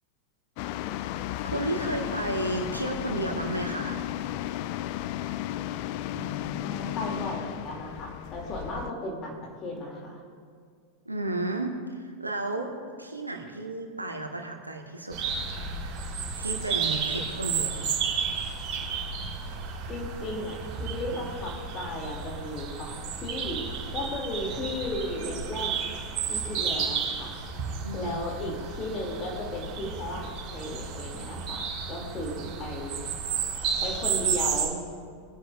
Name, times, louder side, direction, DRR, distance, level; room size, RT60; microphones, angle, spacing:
sound 1, 0.6-8.9, left 13 dB, 45° left, 0.3 m, -34 dB
voice 1, 1.4-4.0 11.0-12.7 13.0-15.2 16.4-17.9 27.8-28.2, right 2 dB, 85° right, 3 dB, 1.4 m, -32 dB
voice 2, 6.1-10.2 19.9-26.0 26.3-27.4 27.9-33.0 33.8-34.8, left 1 dB, 30° left, 0 dB, 2.5 m, -35 dB
sound 2, 15.1-34.7, right 6 dB, 35° right, 3.3 m, -32 dB
22.0 x 10.5 x 2.4 m, 2.2 s
figure-of-eight pair, 90°, 0 cm